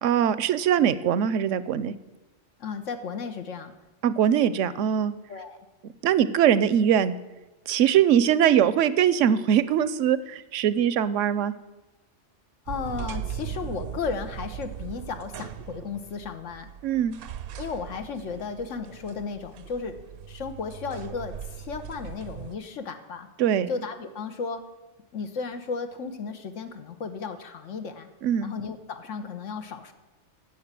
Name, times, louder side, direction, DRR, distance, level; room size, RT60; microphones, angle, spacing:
voice 1, 0.0-1.9 4.0-5.1 6.0-7.1 7.7-11.5 16.8-17.1 23.4-23.7 28.2-28.5, right 9 dB, 85° right, 16 dB, 1.0 m, -22 dB
voice 2, 2.6-3.7 5.3-5.6 12.7-16.7 17.6-19.9 20.3-23.3 23.7-24.6 25.1-28.1 28.4-29.9, left 5 dB, 85° left, 8 dB, 1.3 m, -34 dB
sound 1, 12.7-22.6, right 9 dB, 60° right, 0.6 m, -39 dB
10.0 x 7.6 x 7.4 m, 1.1 s
omnidirectional pair, 1.3 m